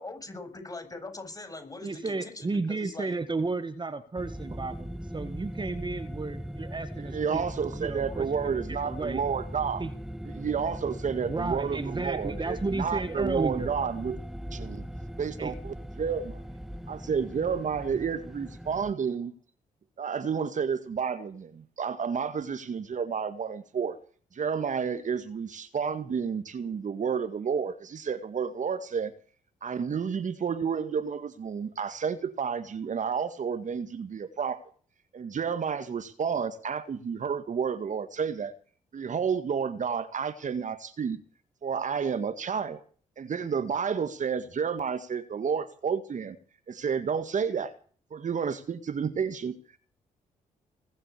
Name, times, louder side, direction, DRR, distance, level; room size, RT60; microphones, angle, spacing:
voice 1, 0.0-3.1 8.1-8.2, left 2 dB, 25° left, 7.3 m, -42 dB
voice 2, 1.8-7.4 7.8-9.2 9.8-9.9 11.3-13.7 15.4-15.5, right 3 dB, 30° right, 1.8 m, -33 dB
sound 1, 4.2-18.9, equal, ahead, 0.9 m, -39 dB
voice 3, 7.0-9.8 10.3-14.2 14.5-14.9 15.2-16.4 16.9-19.3 20.0-24.0 24.3-29.1 29.6-34.6 35.1-38.5 38.9-41.2 41.6-42.8 43.2-46.4 46.7-47.7 48.1-49.6, right 6 dB, 55° right, 1.9 m, -30 dB
21.0 x 7.6 x 8.5 m
supercardioid pair, 55°, 16 cm